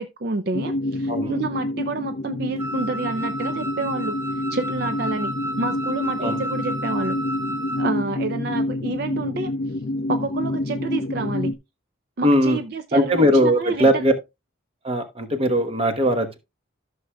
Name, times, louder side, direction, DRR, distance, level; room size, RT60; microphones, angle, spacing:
voice 1, 0.0-7.2 7.8-9.5 10.1-11.5 12.2-14.0, right 3 dB, 50° right, 0.5 m, -29 dB
sound 1, 0.5-11.5, left 1 dB, 45° left, 0.5 m, -28 dB
voice 2, 1.1-1.4 6.2-6.4 12.2-12.6 12.9-14.1 14.8-16.4, equal, 30° right, 1.1 m, -19 dB
Wind instrument woodwind instrument, 2.6-7.9, right 1 dB, 10° right, 0.7 m, -31 dB
14.5 x 6.3 x 2.3 m
head